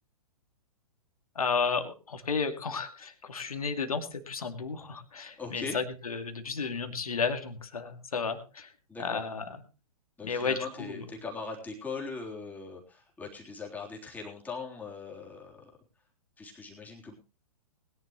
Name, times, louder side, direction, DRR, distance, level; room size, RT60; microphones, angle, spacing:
voice 1, 1.4-8.7 9.0-9.6 10.2-11.0, left 5 dB, 65° left, 7 dB, 2.4 m, -33 dB
voice 2, 5.4-5.8 8.9-9.2 10.2-15.7 16.4-17.1, left 4 dB, 10° left, -1 dB, 3.5 m, -40 dB
21.0 x 11.0 x 3.1 m, 0.32 s
figure-of-eight pair, 115°, 19 cm